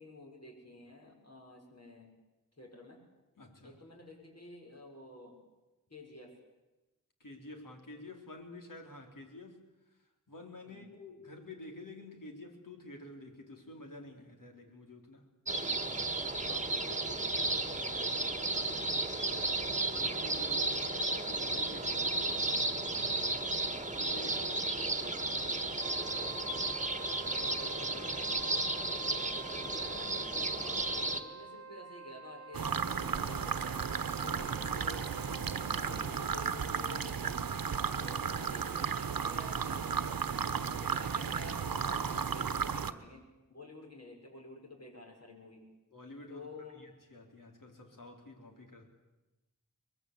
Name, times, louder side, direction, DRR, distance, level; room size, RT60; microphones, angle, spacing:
voice 1, 0.0-2.1 2.6-3.0 3.6-5.4 5.9-6.4 10.6-10.9 16.4-19.6 22.9-23.2 24.2-25.8 27.2-28.1 28.9-29.3 29.6-33.9 34.2-37.6 37.9-40.5 40.8-45.7 46.3-46.8, left 2 dB, 50° left, 2 dB, 6.5 m, -51 dB
voice 2, 3.4-3.8 7.2-15.3 18.5-18.8 19.9-23.1 24.0-24.4 24.8-24.9 25.3-25.5 26.1-26.5 27.6-28.9 38.0-38.4 45.9-46.5 46.7-48.9, left 2 dB, 70° left, 3 dB, 4.3 m, -50 dB
sound 1, 15.5-31.2, right 2 dB, 20° right, 1.7 m, -33 dB
Wind instrument woodwind instrument, 25.7-36.3, right 3 dB, 45° right, 1.2 m, -49 dB
sound 2, 32.5-42.9, right 6 dB, 85° right, 1.1 m, -34 dB
23.5 x 21.0 x 8.4 m, 1.1 s
wide cardioid pair, 65°, 34 cm